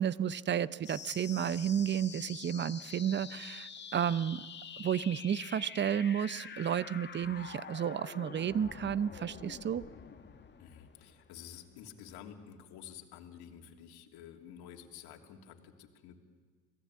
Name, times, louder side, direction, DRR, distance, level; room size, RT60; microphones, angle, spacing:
voice 1, 0.0-4.5 4.8-9.9, right 9 dB, 25° right, 19 dB, 0.7 m, -32 dB
sound 1, 0.8-11.9, left 6 dB, 25° left, 1.8 m, -47 dB
voice 2, 10.6-16.2, left 9 dB, 55° left, 2 dB, 3.1 m, -51 dB
26.5 x 18.5 x 8.6 m, 1.5 s
hypercardioid pair, 75°, 46 cm